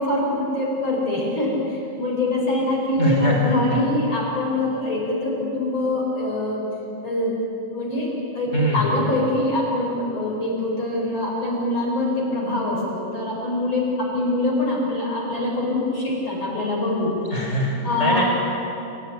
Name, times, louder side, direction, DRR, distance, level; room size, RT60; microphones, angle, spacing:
voice 1, 0.0-6.6 7.0-7.4 7.7-17.1 17.8-18.2, left 1 dB, 40° left, -3 dB, 5.5 m, -24 dB
voice 2, 3.0-3.8 8.5-9.0 17.3-18.2, left 1 dB, 20° left, -2 dB, 5.2 m, -22 dB
28.5 x 15.0 x 9.1 m, 2.9 s
omnidirectional pair, 3.5 m